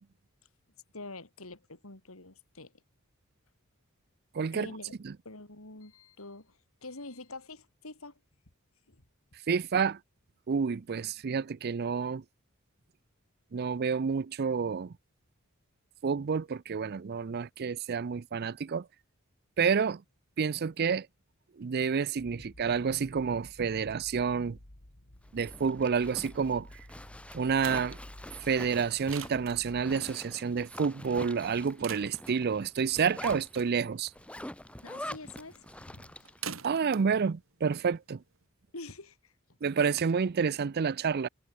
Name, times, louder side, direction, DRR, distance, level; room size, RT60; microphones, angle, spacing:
voice 1, 0.9-2.7 4.5-4.9 5.3-8.2 8.9-9.0 34.8-36.3 38.7-39.3, left 2 dB, 80° left, 3.6 m, -46 dB
voice 2, 4.3-4.7 5.0-5.1 9.5-10.0 10.5-12.2 13.5-14.9 16.0-18.9 19.6-20.0 20.4-21.1 21.6-24.6 25.3-26.7 27.3-28.0 28.4-34.1 36.6-38.2 39.6-41.3, right 6 dB, 50° right, 0.5 m, -29 dB
sound 1, 22.2-29.8, left 1 dB, 55° left, 2.6 m, -52 dB
Zipper (clothing), 25.2-36.4, left 1 dB, 5° left, 1.6 m, -45 dB
sound 2, 27.0-38.4, right 8 dB, 65° right, 2.9 m, -48 dB
head